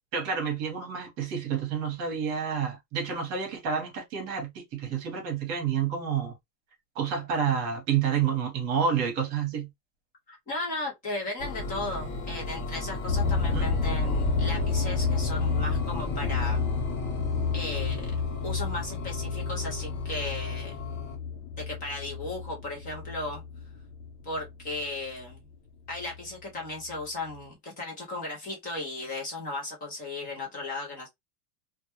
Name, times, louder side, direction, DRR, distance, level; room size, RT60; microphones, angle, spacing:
voice 1, 0.1-6.4 6.9-9.7 13.5-13.7, right 7 dB, 35° right, 0.9 m, -29 dB
voice 2, 10.3-16.6 17.5-18.1 18.4-20.8 21.6-23.4 24.2-25.4 25.9-31.1, left 2 dB, 20° left, 0.5 m, -36 dB
sound 1, 11.4-21.2, left 2 dB, 45° left, 1.0 m, -36 dB
sound 2, 13.1-25.3 25.9-26.3 26.9-27.0 27.3-27.4, left 4 dB, 85° left, 0.7 m, -30 dB
2.2 x 2.1 x 2.9 m
supercardioid pair, 165°, 47 cm